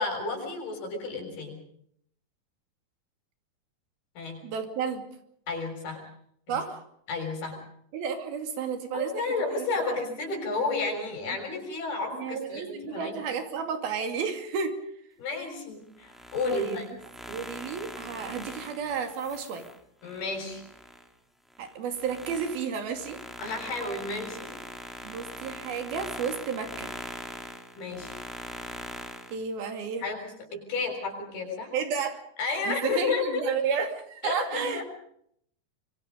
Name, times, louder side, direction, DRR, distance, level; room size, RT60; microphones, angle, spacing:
voice 1, 0.0-1.6 4.2-4.4 5.5-6.0 6.5-6.6 7.1-7.6 8.9-13.2 15.2-16.9 20.0-20.6 23.4-24.6 27.8-28.1 30.0-31.7 32.4-33.5 34.2-34.8, left 3 dB, 80° left, 3 dB, 8.3 m, -32 dB
voice 2, 4.4-5.0 6.5-6.8 7.9-9.2 10.6-10.7 12.1-14.8 16.5-16.8 17.3-19.6 21.6-23.2 25.0-26.9 29.3-30.0 31.7-32.2 32.7-34.8, right 6 dB, 75° right, 6 dB, 4.4 m, -32 dB
sound 1, 16.0-21.1 21.5-29.4, equal, ahead, 2.0 m, -42 dB
25.5 x 23.5 x 5.3 m, 0.69 s
omnidirectional pair, 4.4 m